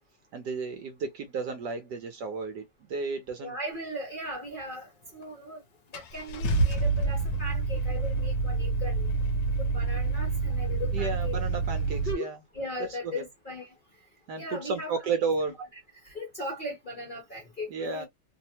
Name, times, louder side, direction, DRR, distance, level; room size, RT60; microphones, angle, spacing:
voice 1, 0.3-3.6 10.9-12.4 13.1-13.2 14.3-15.6 17.7-18.0, right 4 dB, 70° right, 1.1 m, -33 dB
voice 2, 3.4-5.6 5.9-9.1 9.6-11.4 11.9-12.3 12.5-13.7 14.4-15.2 16.0-18.0, left 1 dB, 35° left, 0.9 m, -38 dB
Car / Engine starting, 5.2-5.3 5.9-12.1, right 3 dB, 70° left, 1.2 m, -28 dB
3.2 x 2.0 x 2.8 m
omnidirectional pair, 2.2 m